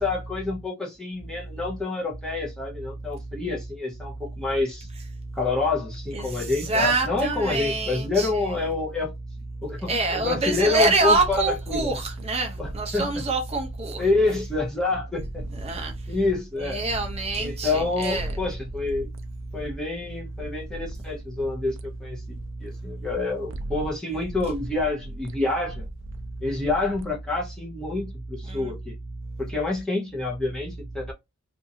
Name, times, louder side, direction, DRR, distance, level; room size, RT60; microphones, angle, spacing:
voice 1, 0.0-4.9 5.3-9.1 9.6-12.0 12.6-13.1 14.0-15.4 16.1-16.8 17.4-19.1 19.5-25.9 26.4-29.0 29.4-31.1, left 3 dB, 5° left, 0.9 m, -27 dB
voice 2, 6.1-8.6 9.9-14.0 15.5-15.9 16.6-18.3 28.5-28.7, right 3 dB, 30° right, 0.7 m, -26 dB
sound 1, 10.8-17.9 18.1-23.2 23.5-23.9 24.2-27.1, right 1 dB, 65° right, 0.4 m, -40 dB
2.7 x 2.6 x 2.7 m
head